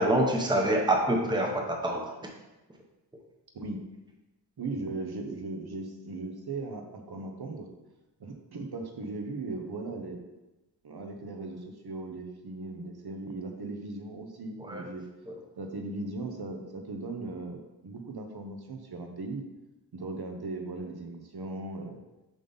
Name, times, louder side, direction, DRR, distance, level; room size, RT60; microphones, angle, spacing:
voice 1, 0.0-2.0 14.7-14.8 15.3-15.4, right 1 dB, 10° right, 1 dB, 0.9 m, -26 dB
voice 2, 4.6-7.7 8.2-10.2 10.8-15.0 15.6-19.4 19.9-22.0, right 3 dB, 55° right, 3 dB, 0.9 m, -38 dB
7.4 x 5.3 x 4.0 m, 1.0 s
wide cardioid pair, 150°, 45 cm